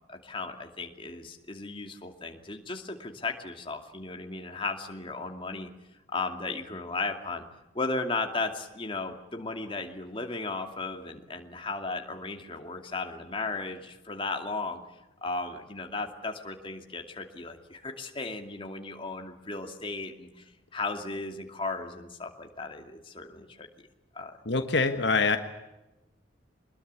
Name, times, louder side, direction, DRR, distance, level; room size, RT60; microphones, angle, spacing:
voice 1, 0.1-5.7 6.1-7.4 7.7-14.8 15.2-20.4 20.7-23.7 24.1-24.3, left 3 dB, 30° left, 4 dB, 2.5 m, -35 dB
voice 2, 24.4-25.4, left 4 dB, 65° left, 7 dB, 1.5 m, -24 dB
24.5 x 21.0 x 8.3 m, 1.0 s
head